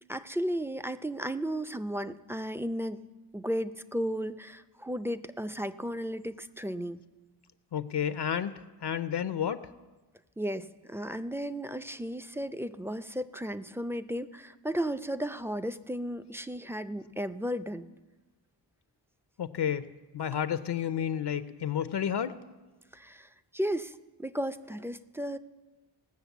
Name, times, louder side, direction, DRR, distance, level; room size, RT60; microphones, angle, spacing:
voice 1, 0.1-3.1 3.3-7.0 10.4-17.9 22.9-25.4, equal, 5° right, 11 dB, 0.4 m, -34 dB
voice 2, 7.7-9.7 19.4-19.9 20.1-22.4, left 9 dB, 70° left, 12 dB, 0.6 m, -31 dB
18.5 x 6.5 x 8.2 m, 1.2 s
wide cardioid pair, 95°, 43 cm